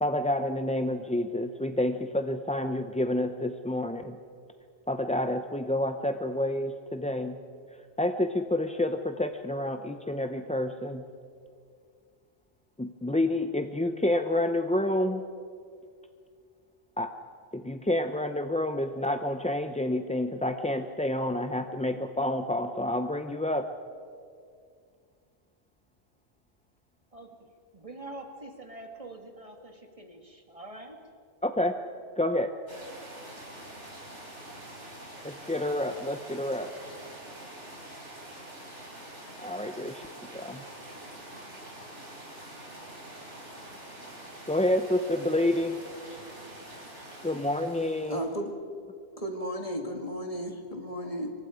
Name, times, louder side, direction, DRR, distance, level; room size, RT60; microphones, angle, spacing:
voice 1, 0.0-4.2 4.9-7.4 8.0-11.1 12.8-15.2 17.0-17.1 17.5-23.7 31.4-31.8 32.2-32.5 35.2-36.7 39.4-40.1 40.3-40.6 44.5-45.8 47.2-48.2, left 1 dB, 10° left, 0.4 m, -29 dB
voice 2, 27.7-31.0, right 2 dB, 30° right, 1.9 m, -45 dB
sound 1, 32.7-48.4, right 1 dB, 80° right, 4.8 m, -45 dB
voice 3, 48.1-48.5 49.2-51.3, equal, 30° left, 2.2 m, -34 dB
27.0 x 24.0 x 5.0 m
omnidirectional pair, 1.2 m